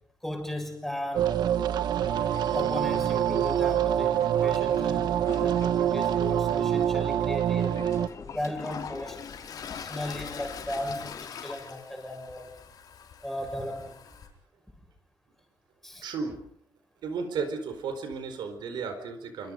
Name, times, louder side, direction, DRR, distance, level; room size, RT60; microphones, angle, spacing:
voice 1, 0.2-1.4 2.5-7.8 8.2-9.2 9.5-12.5 13.2-14.0 15.8-16.1, left 1 dB, 5° left, 3 dB, 6.4 m, -36 dB
sound 1, 1.2-8.1, right 10 dB, 70° right, 1.1 m, -25 dB
sound 2, 1.9-11.3, left 6 dB, 50° left, 3.3 m, -46 dB
Toilet flush, 7.5-7.6 8.1-14.3, left 7 dB, 65° left, 4.8 m, -43 dB
voice 2, 16.0-16.4 17.0-19.5, right 5 dB, 90° right, 7 dB, 4.5 m, -34 dB
26.5 x 25.0 x 5.2 m, 0.68 s
cardioid pair, 150°, 8 cm